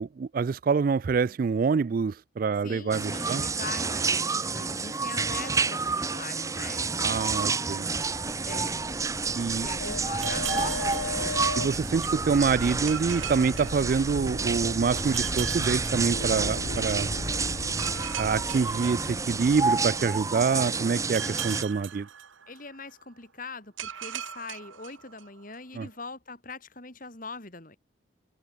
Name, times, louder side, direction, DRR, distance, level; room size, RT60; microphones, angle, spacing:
voice 1, 0.0-3.4 7.0-7.9 9.4-9.7 11.6-17.2 18.2-22.1 25.7-25.9, right 5 dB, 45° right, 0.3 m, -26 dB
voice 2, 2.6-6.8 8.4-8.8 9.6-11.4 22.5-27.8, left 3 dB, 40° left, 3.0 m, -42 dB
sound 1, 2.9-21.6, right 4 dB, 15° right, 0.7 m, -29 dB
sound 2, 7.9-21.4, left 2 dB, 80° left, 1.7 m, -38 dB
sound 3, 10.2-12.0 12.9-14.6 15.1-16.9 17.8-19.8 21.1-22.9 23.8-25.6, right 10 dB, 75° right, 1.4 m, -40 dB
head